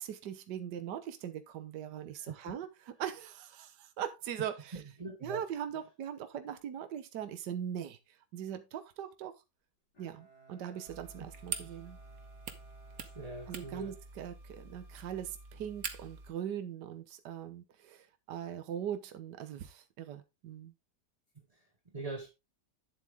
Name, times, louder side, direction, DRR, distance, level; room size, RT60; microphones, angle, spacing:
voice 1, 0.0-4.8 5.2-9.3 10.0-12.0 13.5-20.7, right 9 dB, 70° right, 1.6 m, -41 dB
voice 2, 2.2-2.5 4.7-5.5 11.6-11.7 13.0-13.9 21.3-22.3, right 2 dB, 25° right, 1.0 m, -43 dB
Bowed string instrument, 9.9-14.8, right 4 dB, 70° left, 5.8 m, -60 dB
sound 1, 10.9-16.3, right 6 dB, 55° right, 1.6 m, -45 dB
10.5 x 7.6 x 3.5 m
omnidirectional pair, 1.9 m